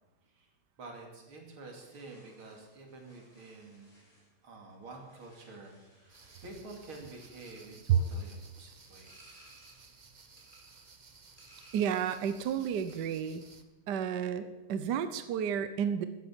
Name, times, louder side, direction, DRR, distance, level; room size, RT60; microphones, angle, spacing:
voice 1, 0.8-4.1 4.4-9.4, right 3 dB, 80° right, 1 dB, 3.5 m, -49 dB
sound 1, 1.7-12.4 12.7-13.2, right 1 dB, 20° left, 6.2 m, -62 dB
sound 2, 6.1-13.6, right 4 dB, 35° right, 0.6 m, -57 dB
voice 2, 11.7-13.4 13.9-16.1, right 8 dB, 65° right, 11 dB, 1.2 m, -31 dB
13.5 x 10.5 x 7.5 m, 1.1 s
omnidirectional pair, 2.3 m